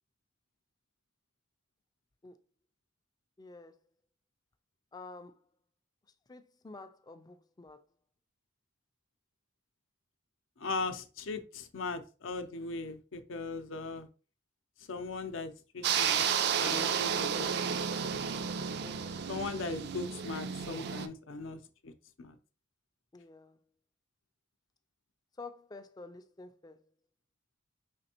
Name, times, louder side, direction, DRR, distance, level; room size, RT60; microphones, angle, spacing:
voice 1, 3.4-3.8 4.9-5.4 6.3-7.8 18.8-19.2 23.1-23.6 25.4-26.8, left 3 dB, 20° left, 0.4 m, -49 dB
voice 2, 10.6-14.1 14.9-16.2 16.6-17.9 18.3-18.8 19.3-21.9 22.2-22.4, left 3 dB, 70° left, 0.6 m, -39 dB
sound 1, 15.8-21.1, right 7 dB, 55° right, 0.4 m, -32 dB
5.1 x 3.3 x 2.8 m
head